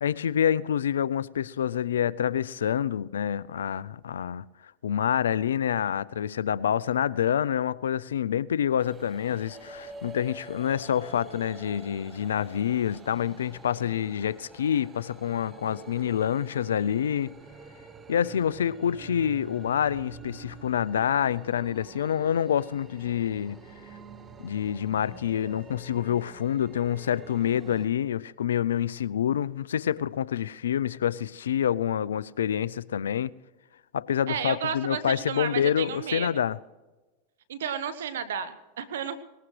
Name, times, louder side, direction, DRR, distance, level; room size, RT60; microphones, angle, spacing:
voice 1, 0.0-4.4 4.8-17.3 18.1-23.6 24.4-33.3 33.9-36.6, left 9 dB, 85° left, 0.4 m, -27 dB
sound 1, 8.8-27.9, right 4 dB, 25° right, 1.3 m, -47 dB
voice 2, 34.3-36.3 37.5-39.2, right 8 dB, 80° right, 1.1 m, -32 dB
19.0 x 18.5 x 3.3 m
hypercardioid pair, 100°, 0 cm